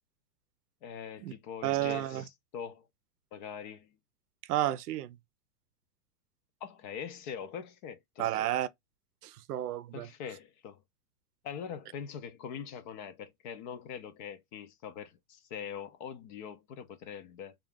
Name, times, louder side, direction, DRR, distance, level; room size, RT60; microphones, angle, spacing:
voice 1, 0.8-2.9 3.3-4.0 6.6-8.3 9.9-10.8 11.4-17.6, left 7 dB, 35° left, 0.4 m, -43 dB
voice 2, 1.6-2.2 4.5-5.2 8.2-8.7 9.2-10.1, right 13 dB, 75° right, 0.6 m, -31 dB
3.6 x 2.4 x 3.5 m
hypercardioid pair, 125°, 46 cm